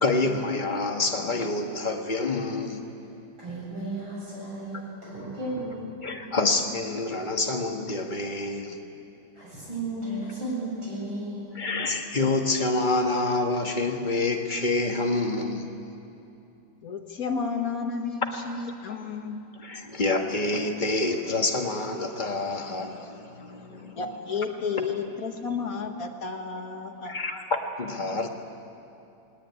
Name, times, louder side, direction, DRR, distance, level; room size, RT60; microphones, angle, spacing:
voice 1, 0.0-2.8 6.0-8.8 11.5-15.7 19.6-24.3 27.0-27.4 27.8-28.3, left 2 dB, 25° left, 3 dB, 1.5 m, -27 dB
voice 2, 3.4-5.9 9.4-11.5, right 1 dB, 80° right, -6 dB, 8.6 m, -34 dB
voice 3, 16.8-19.4 24.0-27.1, left 5 dB, 45° left, 4 dB, 1.8 m, -32 dB
19.5 x 18.0 x 9.7 m, 2.7 s
omnidirectional pair, 2.2 m